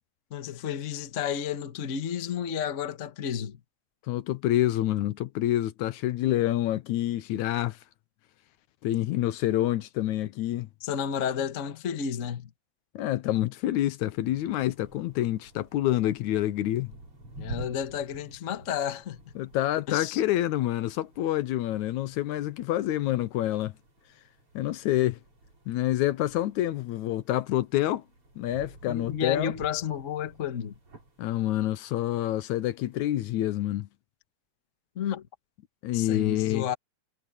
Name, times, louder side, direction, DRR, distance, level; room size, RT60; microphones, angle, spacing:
voice 1, 0.3-3.6 10.8-12.5 17.4-19.2 19.9-20.2 28.9-30.8 34.9-35.3 35.9-36.7, left 8 dB, 45° left, 1.0 m, -31 dB
voice 2, 4.1-7.8 8.8-10.7 13.0-16.9 19.4-23.8 24.6-25.2 25.7-28.0 28.4-29.5 31.2-33.9 35.8-36.7, left 14 dB, 80° left, 2.2 m, -27 dB
sound 1, 14.2-33.0, right 1 dB, 45° right, 6.6 m, -49 dB
omnidirectional pair, 3.4 m